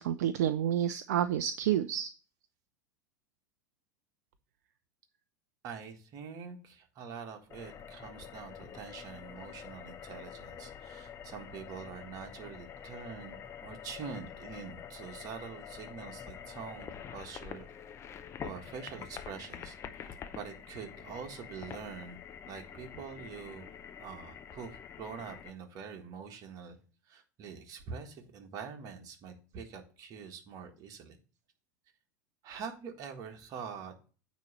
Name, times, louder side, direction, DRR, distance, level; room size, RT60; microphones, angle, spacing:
voice 1, 0.0-2.1, right 10 dB, 65° right, 12 dB, 0.4 m, -29 dB
voice 2, 5.6-17.7 18.4-22.2 22.5-23.7 24.0-26.8 27.1-31.2 32.4-34.1, right 6 dB, 40° right, 4 dB, 1.6 m, -45 dB
sound 1, 7.5-25.5, left 8 dB, 30° left, 0.6 m, -47 dB
9.1 x 3.1 x 6.4 m, 0.37 s
figure-of-eight pair, 85°, 9 cm